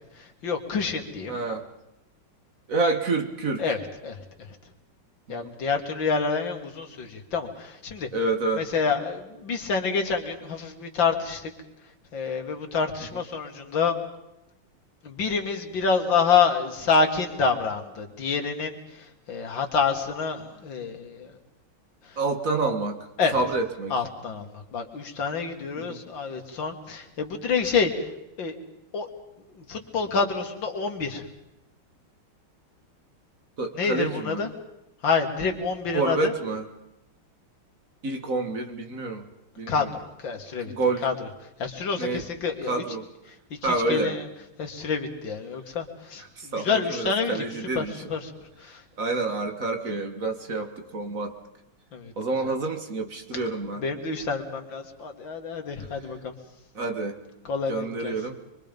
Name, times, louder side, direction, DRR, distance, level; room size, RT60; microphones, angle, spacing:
voice 1, 0.2-1.4 3.6-4.2 5.3-8.1 8.6-11.5 12.1-14.0 15.0-21.3 22.1-22.2 23.2-23.4 23.9-28.1 28.4-28.6 28.9-29.1 29.6-31.3 33.7-34.5 35.0-36.3 39.7-40.7 41.0-41.3 41.6-42.8 43.6-44.3 44.6-47.4 47.7-48.3 48.6-48.8 51.9-52.1 53.3-53.4 53.8-56.3 57.4-58.2, left 5 dB, 65° left, 4 dB, 2.8 m, -27 dB
voice 2, 1.3-1.6 2.7-3.6 5.3-5.5 8.1-8.7 22.2-23.0 23.3-23.9 25.8-26.0 33.6-34.4 35.9-36.7 38.0-39.2 39.6-39.9 40.7-41.1 42.0-42.2 42.7-43.1 43.6-44.2 46.4-47.9 49.0-51.3 52.2-53.8 56.8-57.2 57.7-58.4, right 3 dB, 40° right, 5 dB, 2.1 m, -28 dB
25.0 x 23.5 x 5.3 m, 0.92 s
omnidirectional pair, 2.3 m